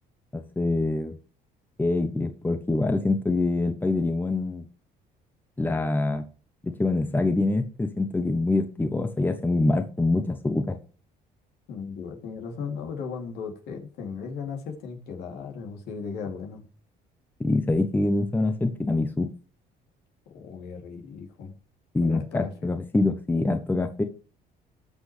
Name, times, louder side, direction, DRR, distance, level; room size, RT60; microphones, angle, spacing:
voice 1, 0.3-1.2 1.8-4.6 5.6-6.3 6.6-10.8 17.4-19.3 21.9-24.0, left 2 dB, 10° left, 8 dB, 0.9 m, -25 dB
voice 2, 11.7-16.7 20.3-21.6 22.0-22.7, left 5 dB, 80° left, 2 dB, 2.7 m, -36 dB
18.0 x 6.1 x 3.3 m, 0.37 s
cardioid pair, 110°, 17 cm